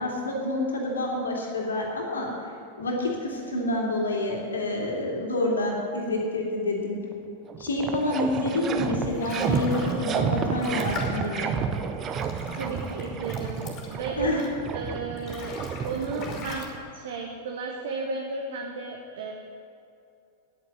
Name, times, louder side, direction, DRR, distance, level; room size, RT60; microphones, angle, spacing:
voice 1, 0.0-2.3 2.8-7.0 7.6-11.5 14.2-14.4, left 1 dB, 70° left, -1 dB, 2.6 m, -28 dB
sound 1, 7.1-7.2 7.5-16.9, right 6 dB, 30° right, 0.9 m, -31 dB
sound 2, 8.7-14.7 15.1-16.6, left 4 dB, 35° left, 2.8 m, -42 dB
voice 2, 12.5-14.4 14.7-15.5 15.8-19.3, right 4 dB, 60° right, 2 dB, 1.2 m, -34 dB
9.6 x 9.2 x 9.5 m, 2.6 s
figure-of-eight pair, 90°, 0 cm